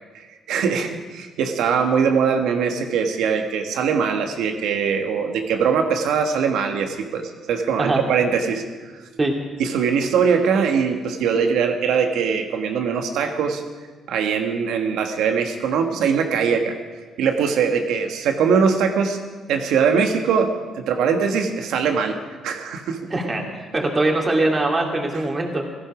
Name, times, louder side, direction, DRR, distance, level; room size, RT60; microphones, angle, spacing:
voice 1, 0.1-8.6 9.6-13.6 14.1-16.8 17.2-19.2 19.5-22.2 22.4-23.1, right 6 dB, 85° right, 5 dB, 1.5 m, -21 dB
voice 2, 23.1-25.7, right 2 dB, 25° right, 1 dB, 2.5 m, -22 dB
17.0 x 14.5 x 5.0 m, 1.4 s
cardioid pair, 90°, 0 cm